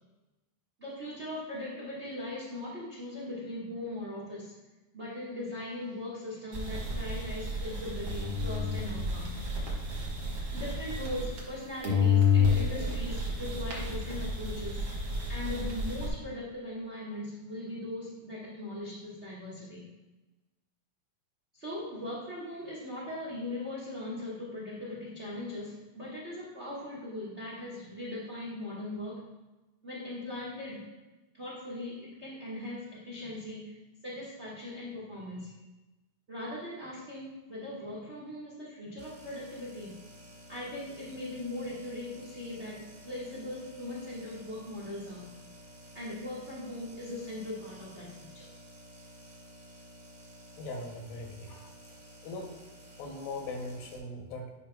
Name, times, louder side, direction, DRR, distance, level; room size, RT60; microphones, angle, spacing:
voice 1, 0.8-4.5 4.9-9.3 10.5-14.8 15.3-19.9 21.5-29.2 29.8-30.9 31.3-33.8 34.0-35.5 36.3-40.0 40.5-45.3 45.9-48.5, left 1 dB, 75° right, -7 dB, 0.6 m, -39 dB
sound 1, 6.5-11.6 11.8-16.1, left 4 dB, 55° right, 1.5 m, -30 dB
sound 2, 39.0-54.0, equal, 30° right, 1.1 m, -52 dB
voice 2, 50.6-51.7 52.2-52.5 53.0-54.5, left 2 dB, 80° left, 2 dB, 2.6 m, -40 dB
10.0 x 5.5 x 2.2 m, 1.1 s
omnidirectional pair, 3.9 m